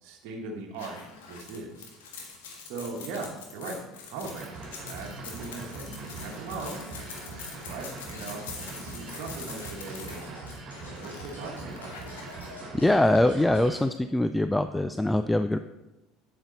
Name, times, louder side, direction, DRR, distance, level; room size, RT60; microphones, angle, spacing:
voice 1, 0.0-1.0 1.2-1.9 2.6-3.8 4.1-6.8 7.7-12.2, right 3 dB, 60° right, -1 dB, 1.5 m, -39 dB
sound 1, 0.7-12.4, left 5 dB, 75° left, 1.5 m, -44 dB
sound 2, 4.2-13.8, right 3 dB, 40° right, 2.5 m, -43 dB
sound 3, 4.8-13.8, left 1 dB, 90° left, 2.2 m, -47 dB
voice 2, 12.8-15.6, left 1 dB, 10° left, 10 dB, 0.4 m, -23 dB
8.0 x 7.9 x 3.9 m, 1.0 s
figure-of-eight pair, 65°, 0 cm